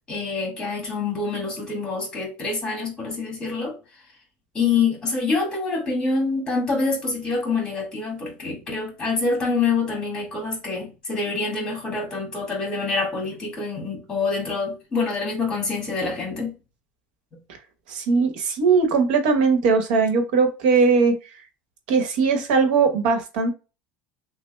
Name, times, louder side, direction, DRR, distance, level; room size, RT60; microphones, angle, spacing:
voice 1, 0.1-3.8 4.5-16.5, left 4 dB, 15° left, 1.8 m, -26 dB
voice 2, 17.9-21.2 21.9-23.5, right 4 dB, 90° right, 1.0 m, -19 dB
6.1 x 2.1 x 2.2 m
cardioid pair, 165°, 5 cm